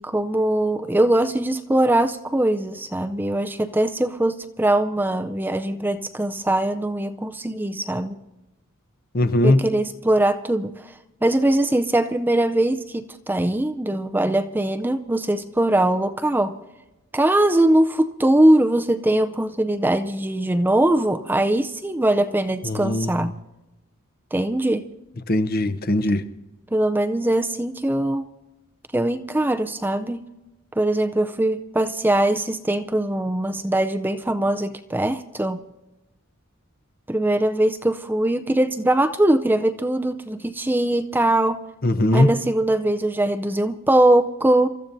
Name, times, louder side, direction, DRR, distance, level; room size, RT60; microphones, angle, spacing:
voice 1, 0.0-8.2 9.4-10.7 11.2-16.6 17.1-23.3 24.3-24.8 26.7-28.2 28.9-30.2 30.8-35.6 37.1-41.6 42.1-44.7, right 1 dB, 10° right, 0.4 m, -21 dB
voice 2, 9.1-9.6 22.6-23.1 25.3-26.2 41.8-42.3, left 1 dB, 45° left, 0.7 m, -19 dB
28.5 x 14.0 x 2.6 m
head